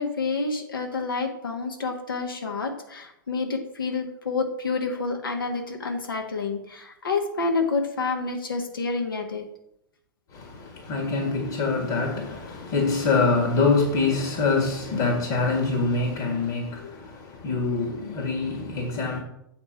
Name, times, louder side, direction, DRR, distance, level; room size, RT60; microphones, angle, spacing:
voice 1, 0.0-9.4 16.8-16.9, left 4 dB, 80° left, 1.5 m, -28 dB
voice 2, 10.3-19.2, left 3 dB, 50° left, 1.8 m, -25 dB
8.4 x 4.4 x 5.9 m
figure-of-eight pair, 95°, 11 cm